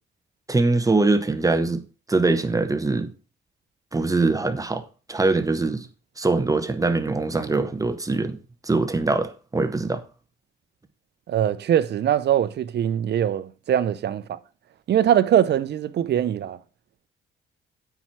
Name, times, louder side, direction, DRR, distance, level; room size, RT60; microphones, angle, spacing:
voice 1, 0.5-3.1 3.9-4.8 5.1-5.9 6.2-8.4 8.6-10.0, right 3 dB, 15° right, 1.0 m, -22 dB
voice 2, 11.3-14.4 14.9-16.6, right 10 dB, 60° right, 0.7 m, -22 dB
9.0 x 4.6 x 6.0 m
cardioid pair, 90°, 20 cm